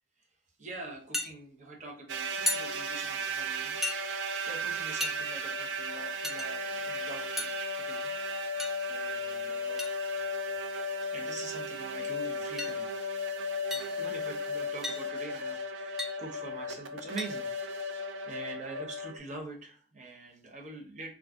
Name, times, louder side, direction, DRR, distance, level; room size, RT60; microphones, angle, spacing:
voice 1, 0.6-3.8 4.1-8.5 8.9-10.3 10.6-13.2 13.7-17.9 18.3-21.1, right 2 dB, 45° right, 0 dB, 0.7 m, -45 dB
sound 1, 1.1-1.3 2.5-2.7 3.8-4.0 5.0-5.1 6.2-6.5 7.4-7.6 8.6-8.9 9.8-9.9 11.0-11.1 11.6-11.7 12.6-12.7 13.7-14.0 14.8-15.1 16.0-16.2 17.2-17.3, left 2 dB, ahead, 0.3 m, -34 dB
sound 2, 2.1-19.2, left 1 dB, 85° right, 0.4 m, -35 dB
2.5 x 2.4 x 3.4 m, 0.42 s
head